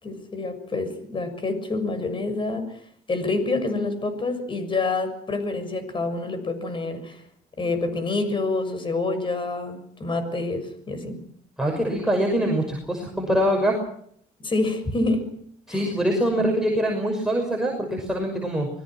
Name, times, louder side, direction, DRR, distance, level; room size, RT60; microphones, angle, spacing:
voice 1, 0.0-2.8 3.1-7.2 7.6-11.2 14.4-15.4 15.7-15.9 16.4-16.5, left 3 dB, 30° left, 10 dB, 6.7 m, -27 dB
voice 2, 11.6-13.8 15.7-18.7, equal, 5° right, 0 dB, 6.1 m, -24 dB
25.0 x 21.5 x 6.3 m, 0.66 s
cardioid pair, 110°, 17 cm